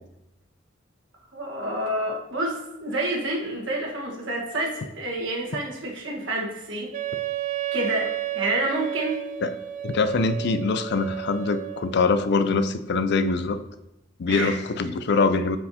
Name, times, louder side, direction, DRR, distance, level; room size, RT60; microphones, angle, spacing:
voice 1, 1.3-6.9 7.7-9.2 14.3-14.5, right 1 dB, 65° right, -2 dB, 1.5 m, -28 dB
Wind instrument woodwind instrument, 6.9-12.0, right 14 dB, 40° right, 0.3 m, -32 dB
voice 2, 9.8-13.6 14.2-15.6, left 4 dB, 55° left, 12 dB, 0.4 m, -23 dB
9.3 x 4.5 x 2.8 m, 0.91 s
head